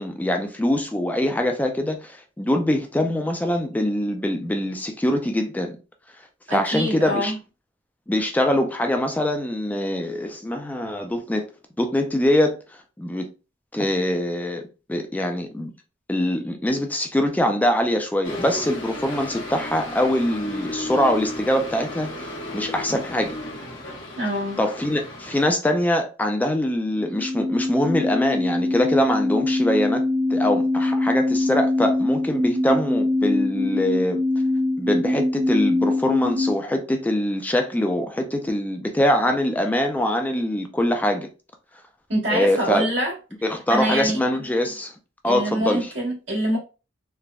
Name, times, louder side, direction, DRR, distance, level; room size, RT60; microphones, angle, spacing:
voice 1, 0.0-5.8 6.5-7.3 8.1-11.5 11.8-12.6 13.0-13.3 13.7-15.7 16.1-22.1 22.5-23.3 24.6-30.0 30.3-34.2 34.8-41.3 42.3-42.9 43.4-44.9 45.2-45.9, left 1 dB, 10° left, 0.3 m, -23 dB
voice 2, 6.5-7.4 24.2-24.6 42.1-43.1 43.7-44.2 45.2-46.6, right 1 dB, 85° right, 1.5 m, -25 dB
sound 1, 18.2-25.4, left 2 dB, 80° left, 0.9 m, -34 dB
sound 2, 27.0-36.6, left 2 dB, 65° right, 0.7 m, -23 dB
3.3 x 2.0 x 2.3 m
head